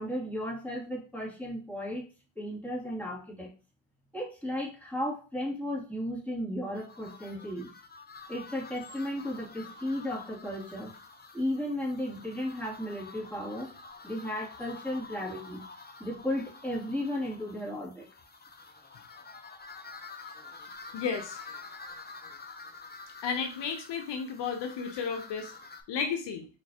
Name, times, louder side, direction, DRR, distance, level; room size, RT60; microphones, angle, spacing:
voice 1, 0.0-2.0 2.4-3.5 4.1-7.7 8.3-10.9 11.3-13.7 14.0-15.6 16.0-18.1, left 1 dB, 5° left, -4 dB, 2.3 m, -34 dB
sound 1, 6.7-25.8, left 4 dB, 25° left, 0.7 m, -48 dB
voice 2, 20.9-21.6 23.2-25.5 25.9-26.4, left 6 dB, 75° left, 6 dB, 0.8 m, -33 dB
4.4 x 3.3 x 2.8 m, 0.33 s
supercardioid pair, 55°, 43 cm